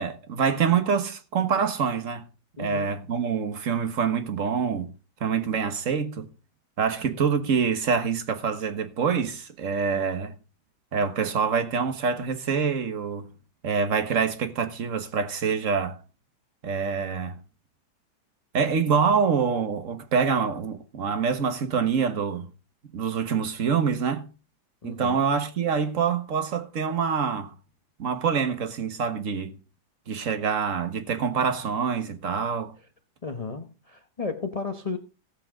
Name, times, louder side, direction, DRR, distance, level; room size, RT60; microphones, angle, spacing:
voice 1, 0.0-2.3 2.6-4.9 5.2-6.3 6.8-10.3 10.9-13.3 13.6-16.0 16.6-17.4 18.5-22.5 22.9-24.3 24.8-27.5 28.0-29.6 30.1-32.7, right 6 dB, 45° right, 1.5 m, -26 dB
voice 2, 2.6-2.9 24.8-25.2 33.2-35.0, left 4 dB, 40° left, 0.5 m, -33 dB
17.0 x 7.7 x 3.7 m
omnidirectional pair, 2.1 m